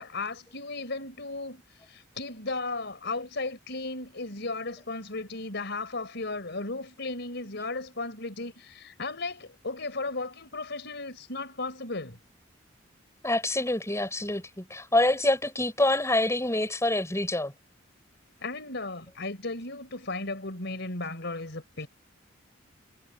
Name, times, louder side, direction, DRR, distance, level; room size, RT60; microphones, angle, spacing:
voice 1, 0.0-1.6 1.9-12.2 18.4-21.9, left 3 dB, 60° left, 4.6 m, -35 dB
voice 2, 13.2-17.5, left 1 dB, 15° left, 6.4 m, -26 dB
head